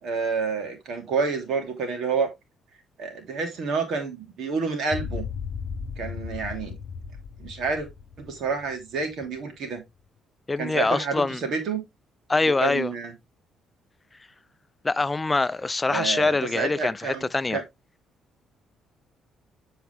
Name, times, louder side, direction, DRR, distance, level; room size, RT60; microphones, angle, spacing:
voice 1, 0.0-2.3 3.0-5.2 6.0-6.8 7.4-7.9 8.2-9.8 10.6-11.8 12.6-13.1 15.9-17.6, right 5 dB, 65° right, 2.8 m, -29 dB
sound 1, 4.9-9.2, left 6 dB, 50° left, 0.8 m, -35 dB
voice 2, 10.5-11.4 12.3-12.9 14.8-17.6, left 3 dB, 20° left, 0.4 m, -24 dB
7.8 x 4.7 x 3.4 m
cardioid pair, 100°, 0 cm